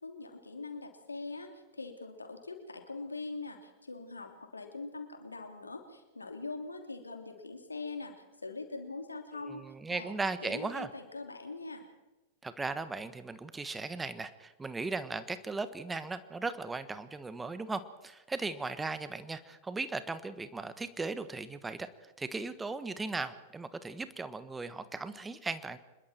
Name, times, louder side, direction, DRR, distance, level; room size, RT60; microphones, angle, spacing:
voice 1, 0.0-8.1 8.4-9.6 9.9-10.1 10.4-11.8, left 3 dB, 90° left, 4 dB, 3.3 m, -42 dB
voice 2, 9.4-10.9 12.4-21.9 22.2-25.8, right 3 dB, 10° right, 12 dB, 1.4 m, -37 dB
26.5 x 22.0 x 4.6 m, 1.1 s
figure-of-eight pair, 95°, 0 cm